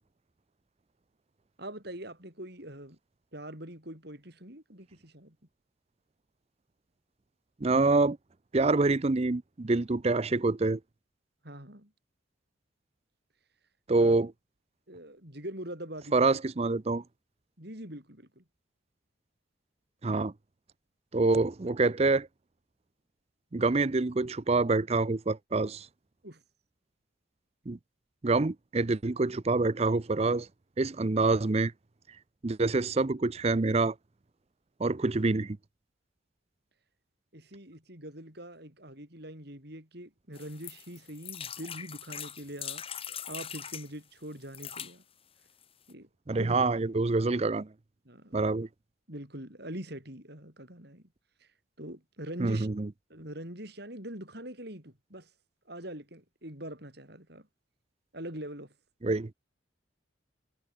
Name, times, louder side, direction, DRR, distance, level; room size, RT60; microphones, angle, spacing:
voice 1, 1.6-3.0 3.3-5.4 11.4-11.9 13.9-14.2 14.9-16.4 17.6-18.4 26.2-26.4 37.3-42.8 43.3-45.0 45.9-46.6 48.1-48.4 49.1-51.0 51.4-51.5 51.8-52.7 53.1-55.3 55.7-57.5 58.1-58.7, right 1 dB, 50° right, 7.9 m, -43 dB
voice 2, 7.6-8.2 8.5-10.8 13.9-14.3 16.1-17.0 20.0-20.3 21.1-22.3 23.5-25.9 27.7-27.8 28.2-30.5 30.8-31.7 32.4-33.9 34.8-35.6 46.3-47.7 48.3-48.7 52.4-52.9 59.0-59.3, right 3 dB, 30° right, 0.5 m, -26 dB
sound 1, 40.4-43.9 44.4-44.9 45.6-45.7 45.9-46.0, left 9 dB, 30° left, 2.0 m, -41 dB
head